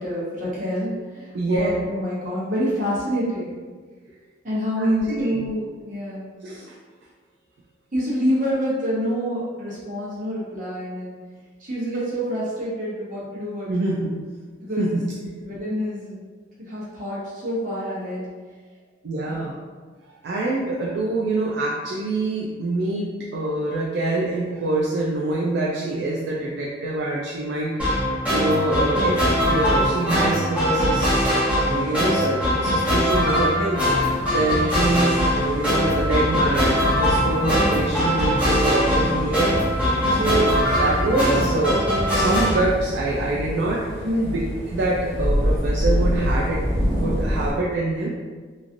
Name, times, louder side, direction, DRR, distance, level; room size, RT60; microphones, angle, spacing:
voice 1, 0.0-3.6 4.4-6.3 7.9-11.2 11.6-14.0 14.6-15.0 15.4-16.2 16.6-18.3 19.3-19.4 40.1-40.5 44.0-44.3, equal, 40° right, -7 dB, 0.9 m, -27 dB
voice 2, 1.3-1.7 4.8-5.5 6.4-6.7 13.7-14.1 14.8-15.1 19.0-19.5 20.2-27.8 28.3-31.1 31.6-40.5 40.8-41.8 42.1-44.0 44.2-44.4 44.7-48.1, right 2 dB, 60° right, -4 dB, 0.3 m, -25 dB
sound 1, 27.8-42.6, equal, 5° right, 0.9 m, -21 dB
sound 2, 33.8-47.5, equal, 30° left, 0.9 m, -27 dB
3.0 x 2.5 x 2.5 m, 1.5 s
head